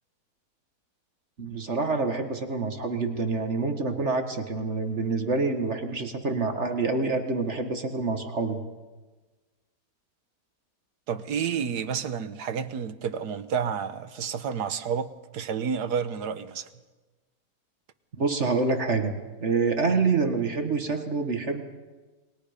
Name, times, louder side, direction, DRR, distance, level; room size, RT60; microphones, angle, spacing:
voice 1, 1.4-8.6 18.2-19.1 19.4-21.6, right 4 dB, 45° right, 1.9 m, -27 dB
voice 2, 11.1-16.7, right 7 dB, 70° right, 1.6 m, -30 dB
30.0 x 21.5 x 5.2 m
omnidirectional pair, 1.8 m